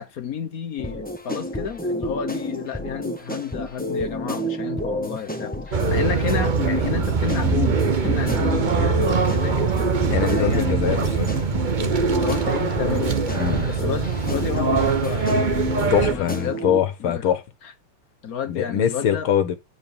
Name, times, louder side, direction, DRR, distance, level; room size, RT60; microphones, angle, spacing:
voice 1, 0.0-11.1 12.1-13.2 13.7-15.3 15.8-16.6 17.0-17.3 17.6-17.7 18.2-19.3, left 8 dB, 50° left, 1.2 m, -31 dB
sound 1, 0.8-16.8, left 1 dB, 5° left, 0.7 m, -30 dB
sound 2, 5.7-16.1, right 5 dB, 45° right, 0.6 m, -23 dB
sound 3, 5.9-15.5, right 12 dB, 65° right, 1.3 m, -32 dB
voice 2, 10.1-11.3 13.3-13.7 15.9-17.4 18.5-19.6, left 9 dB, 80° left, 2.1 m, -23 dB
10.0 x 4.3 x 7.0 m
omnidirectional pair, 2.3 m